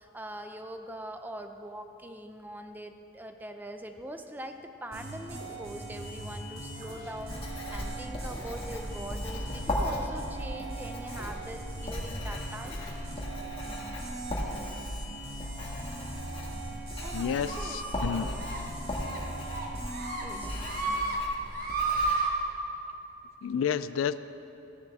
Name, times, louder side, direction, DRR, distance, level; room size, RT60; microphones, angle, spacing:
voice 1, 0.0-12.8 17.0-18.5 20.2-20.6, right 1 dB, 10° right, 7 dB, 0.5 m, -43 dB
sound 1, 4.9-21.0, right 1 dB, 90° right, 2.8 m, -41 dB
Writing, 7.1-22.1, left 1 dB, 30° left, 1.6 m, -37 dB
voice 2, 17.1-18.3 23.4-24.2, left 7 dB, 75° left, 15 dB, 0.3 m, -30 dB
sound 2, 17.5-18.0 18.4-18.6 18.9-19.2 19.5-20.2 20.6-21.2 21.5-22.3, right 3 dB, 45° right, 1.3 m, -31 dB
14.5 x 10.5 x 3.5 m, 2.9 s
head